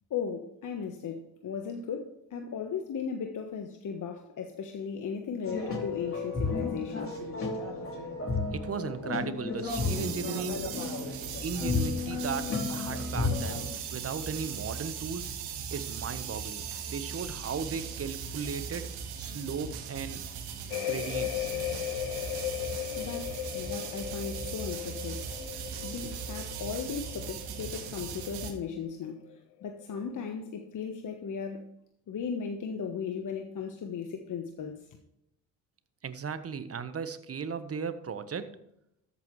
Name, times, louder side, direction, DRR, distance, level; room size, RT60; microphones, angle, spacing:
voice 1, 0.1-7.2 23.0-25.2 25.8-29.2 29.6-31.6 32.1-34.8, left 6 dB, 50° left, 1.3 m, -36 dB
sound 1, 5.4-13.7, left 3 dB, 35° left, 4.1 m, -33 dB
voice 2, 8.5-10.6 11.4-13.6 13.9-15.3 15.7-18.9 19.2-20.3 20.8-21.5 36.0-38.5, right 5 dB, 35° right, 1.3 m, -36 dB
sound 2, 9.7-28.5, right 7 dB, 75° right, 1.9 m, -39 dB
sound 3, 20.7-29.4 29.6-30.1, left 13 dB, 75° left, 0.8 m, -37 dB
13.5 x 8.4 x 3.3 m
hypercardioid pair, 60°, 39 cm